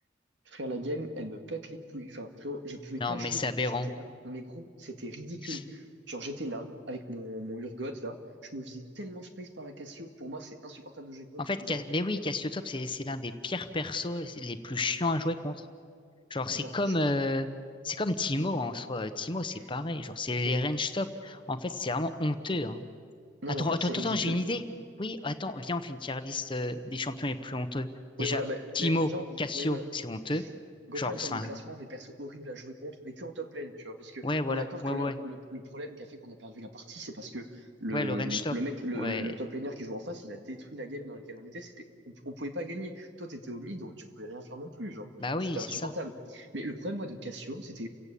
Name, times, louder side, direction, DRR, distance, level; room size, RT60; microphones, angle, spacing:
voice 1, 0.5-8.2 8.4-11.8 16.5-16.9 20.4-20.6 23.4-24.4 28.2-29.8 30.3-30.5 30.9-45.1 45.5-47.9, equal, 65° right, 6 dB, 2.1 m, -39 dB
voice 2, 3.0-3.9 5.4-5.6 11.4-15.7 16.3-17.5 17.8-22.8 23.6-24.6 25.0-27.9 28.2-28.4 28.7-29.1 29.4-30.4 30.9-31.5 34.2-35.2 37.9-38.5 38.9-39.3 45.2-45.9, left 2 dB, 25° left, 9 dB, 1.1 m, -31 dB
30.0 x 16.5 x 8.5 m, 2.2 s
head